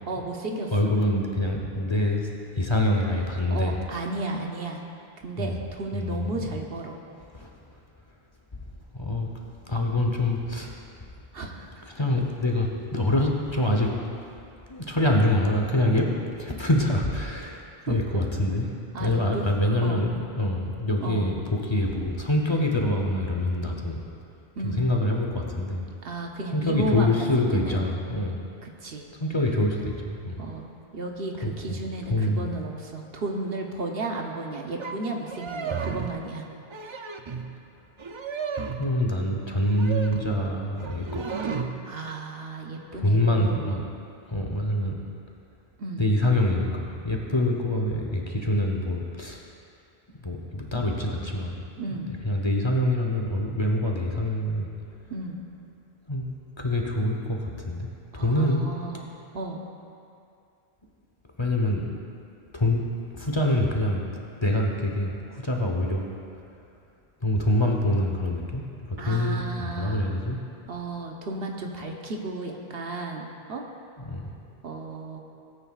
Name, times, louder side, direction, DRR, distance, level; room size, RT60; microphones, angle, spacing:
voice 1, 0.1-1.0 3.5-4.8 5.2-7.0 11.3-11.7 17.9-18.0 18.9-19.5 19.8-20.0 21.0-21.3 24.6-24.8 26.0-27.8 28.6-29.1 30.4-36.5 41.8-43.6 45.8-46.0 51.8-52.1 55.1-55.4 58.1-59.1 59.3-59.6 69.0-70.1 70.7-73.6 74.6-75.2, right 2 dB, 65° right, 1 dB, 1.1 m, -33 dB
voice 2, 0.7-2.3 2.6-3.7 5.4-5.6 5.9-6.5 7.3-7.5 8.9-9.3 9.7-10.7 11.9-14.0 14.7-16.1 16.4-18.7 19.0-24.0 24.6-25.9 26.5-28.4 29.2-30.4 31.4-31.8 32.1-32.5 38.7-41.5 43.0-43.8 44.3-44.9 46.0-49.4 50.2-51.6 52.2-54.7 56.1-56.2 56.6-58.6 61.4-61.8 62.5-62.9 63.1-66.1 67.2-70.4 74.0-74.3, left 1 dB, 30° left, 0 dB, 0.9 m, -25 dB
sound 1, 34.8-35.0 35.2-36.2 36.6-37.5 38.0-38.9 39.6-40.4 40.8-41.7, right 5 dB, 40° right, 0.4 m, -33 dB
17.5 x 9.1 x 2.4 m, 2.5 s
omnidirectional pair, 1.1 m